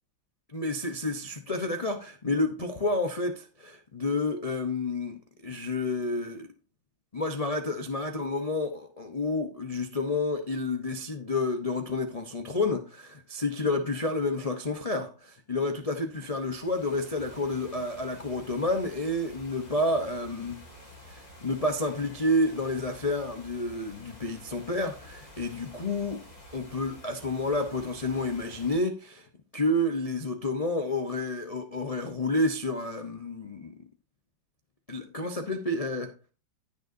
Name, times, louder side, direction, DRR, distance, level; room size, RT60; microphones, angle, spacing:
voice 1, 0.5-6.5 7.1-20.6 21.1-26.3 26.5-29.3 29.5-33.7 34.9-36.1, left 2 dB, 55° left, 0.4 m, -30 dB
sound 1, 16.1-28.8, left 1 dB, 20° left, 2.6 m, -49 dB
15.5 x 6.6 x 2.6 m
omnidirectional pair, 2.1 m